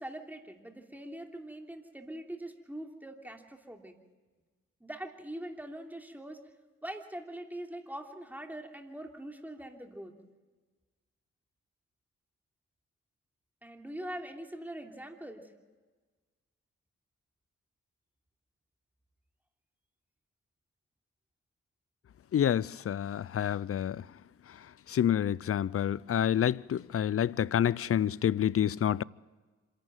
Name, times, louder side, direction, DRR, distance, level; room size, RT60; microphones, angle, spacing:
voice 1, 0.0-3.9 4.8-6.4 6.8-10.1 13.6-15.5, right 1 dB, 5° right, 3.1 m, -43 dB
voice 2, 22.3-24.0 24.9-29.0, left 10 dB, 50° left, 0.5 m, -28 dB
26.5 x 11.5 x 9.0 m
supercardioid pair, 50°, 30 cm